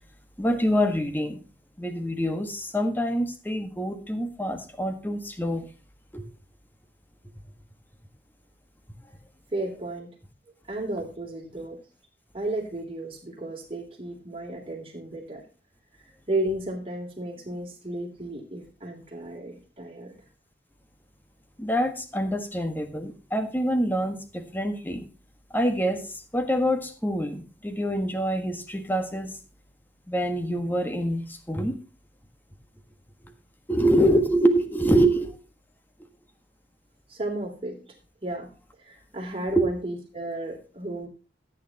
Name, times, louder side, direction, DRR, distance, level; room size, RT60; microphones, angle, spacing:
voice 1, 0.4-1.4 1.8-5.7 6.1-6.3 21.6-25.0 25.5-26.0 26.3-29.3 30.1-31.7 33.7-35.4 39.5-39.7, equal, 10° left, 7 dB, 1.5 m, -25 dB
voice 2, 9.5-10.1 10.7-11.8 12.3-15.4 16.3-20.1 37.1-37.8 38.2-38.5 38.8-41.1, right 1 dB, 30° right, 1 dB, 3.2 m, -33 dB
14.5 x 9.3 x 2.9 m, 0.34 s
head